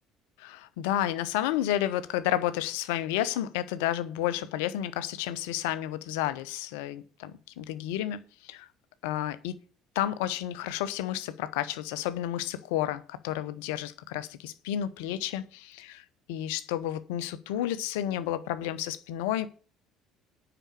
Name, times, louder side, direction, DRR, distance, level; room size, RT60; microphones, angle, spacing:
voice 1, 0.4-7.3 7.6-8.7 9.0-9.6 9.9-19.5, left 12 dB, 65° left, 0.8 m, -31 dB
9.0 x 6.0 x 8.3 m
figure-of-eight pair, 55°, 0 cm